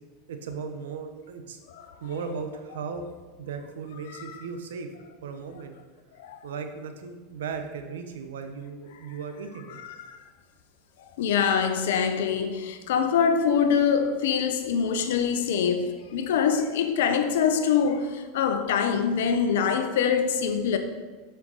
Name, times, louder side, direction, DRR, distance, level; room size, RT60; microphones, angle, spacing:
voice 1, 0.3-1.6 2.0-3.1 3.4-4.9 5.2-5.7 6.4-9.8, right 5 dB, 85° right, 0.9 m, -36 dB
voice 2, 11.2-20.8, left 7 dB, 75° left, 0.8 m, -24 dB
7.6 x 5.7 x 4.1 m
hypercardioid pair, 100°, 0 cm